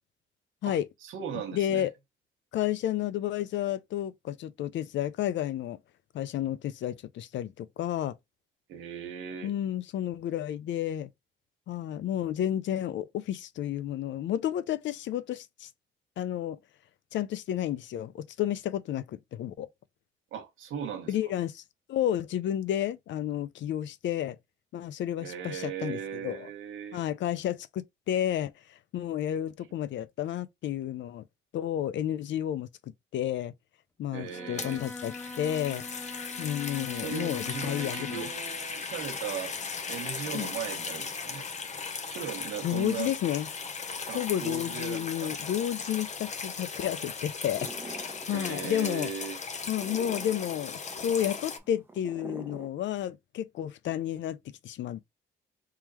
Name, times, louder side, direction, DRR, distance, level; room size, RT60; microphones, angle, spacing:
voice 1, 0.7-1.9 8.7-9.5 20.3-21.1 25.2-27.0 34.1-34.9 36.9-39.6 39.9-41.5 42.1-43.2 44.1-45.5 48.3-49.4, right 8 dB, 80° right, 1.3 m, -38 dB
voice 2, 1.5-1.9 2.5-5.8 6.1-8.2 9.4-11.1 11.7-15.7 16.2-16.6 17.1-19.7 21.1-21.6 21.9-24.4 24.7-26.5 26.9-31.2 31.5-32.7 33.1-33.5 34.0-35.8 36.4-38.3 40.3-40.5 42.6-43.5 44.1-49.1 49.7-55.0, left 11 dB, 70° left, 0.5 m, -31 dB
Bowed string instrument, 34.3-38.4, left 3 dB, 10° left, 0.3 m, -42 dB
sound 1, 34.4-51.6, left 5 dB, 35° left, 0.8 m, -37 dB
sound 2, 47.5-52.7, right 3 dB, 10° right, 0.9 m, -46 dB
3.7 x 3.1 x 2.9 m
cardioid pair, 90°, 20 cm